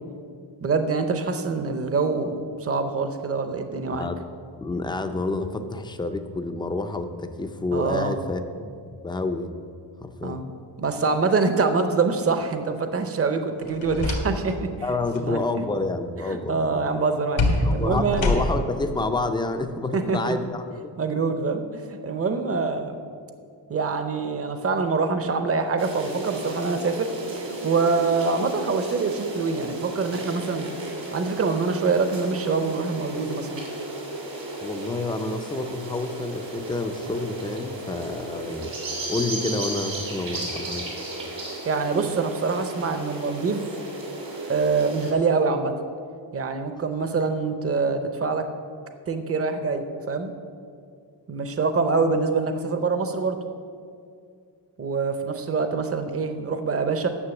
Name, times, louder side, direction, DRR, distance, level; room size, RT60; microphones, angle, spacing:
voice 1, 0.6-4.1 7.7-8.2 10.2-10.5 10.8-14.7 15.2-15.6 16.5-18.5 19.9-20.3 21.0-23.0 23.7-30.7 31.1-33.6 41.7-43.7 44.5-45.7 46.3-48.5 49.1-50.3 51.3-53.4 54.8-57.1, right 4 dB, 30° right, 8 dB, 0.7 m, -25 dB
voice 2, 3.9-4.2 4.6-9.5 10.0-10.4 14.8-16.8 17.6-20.9 34.6-38.7 39.1-40.9, left 2 dB, 10° left, 8 dB, 0.4 m, -29 dB
sound 1, 13.6-14.6 14.9-15.3 17.4-18.8, left 2 dB, 85° left, 1.8 m, -25 dB
sound 2, 25.8-45.1, right 2 dB, 75° right, 2.7 m, -34 dB
9.8 x 6.7 x 7.0 m, 2.3 s
wide cardioid pair, 145°, 45 cm